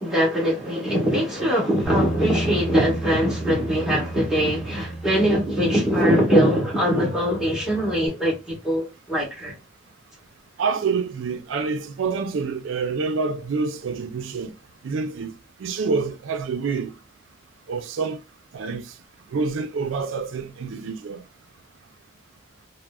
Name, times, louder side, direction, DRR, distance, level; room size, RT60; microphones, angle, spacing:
voice 1, 0.0-9.5, equal, 5° right, 1.2 m, -22 dB
Bass guitar, 1.8-8.1, right 2 dB, 25° left, 0.8 m, -33 dB
voice 2, 10.6-14.5 14.8-15.3 15.6-16.9 17.7-18.2 18.5-18.8 19.3-21.2, right 4 dB, 85° right, 0.4 m, -27 dB
3.6 x 2.0 x 2.2 m
head